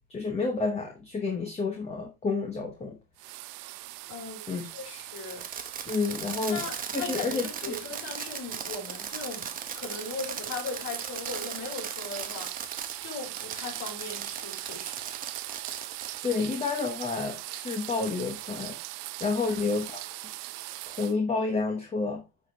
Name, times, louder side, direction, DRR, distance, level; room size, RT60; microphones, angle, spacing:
voice 1, 0.1-3.0 4.5-4.6 5.9-6.6 6.9-7.8 16.2-18.8 19.2-20.0 20.9-22.2, left 4 dB, 15° left, 1.1 m, -30 dB
sound 1, 3.2-21.1, right 18 dB, 65° right, 0.7 m, -40 dB
voice 2, 4.1-5.4 6.5-9.5 9.8-12.7 13.0-15.0 19.5-19.6, left 4 dB, 40° left, 5.5 m, -38 dB
Fireworks, 5.1-12.9 13.4-16.2, right 6 dB, 20° right, 0.9 m, -38 dB
9.2 x 4.9 x 3.3 m
cardioid pair, 165°, 43 cm